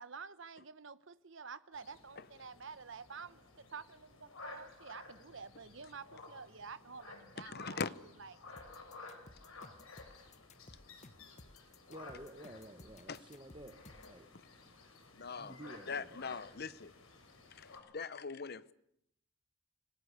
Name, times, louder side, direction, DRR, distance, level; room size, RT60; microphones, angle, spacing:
voice 1, 0.0-3.4 3.7-7.8 8.2-8.4, right 5 dB, 65° right, 1.0 m, -49 dB
sound 1, 1.7-17.8, left 3 dB, 85° left, 5.8 m, -55 dB
voice 2, 7.4-7.9 13.1-13.2 15.1-15.6 15.9-16.9 17.5-18.7, left 5 dB, 50° left, 0.9 m, -41 dB
sound 2, 8.6-14.2, left 2 dB, 35° left, 1.2 m, -57 dB
voice 3, 11.9-13.8 14.1-14.3 15.4-16.2, right 1 dB, 25° right, 1.2 m, -51 dB
26.0 x 19.0 x 8.2 m
head